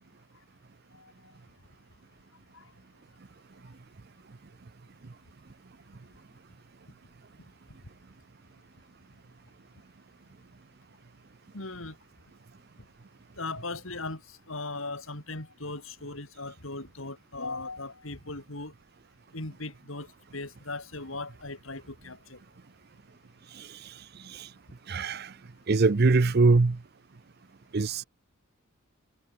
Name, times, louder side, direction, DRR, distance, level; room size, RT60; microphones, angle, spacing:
voice 1, 11.5-11.9 13.4-18.7 19.3-20.1 20.3-22.4, left 2 dB, 75° left, 4.7 m, -38 dB
voice 2, 24.9-25.3 25.7-26.8 27.7-28.0, right 3 dB, 50° right, 0.6 m, -23 dB
head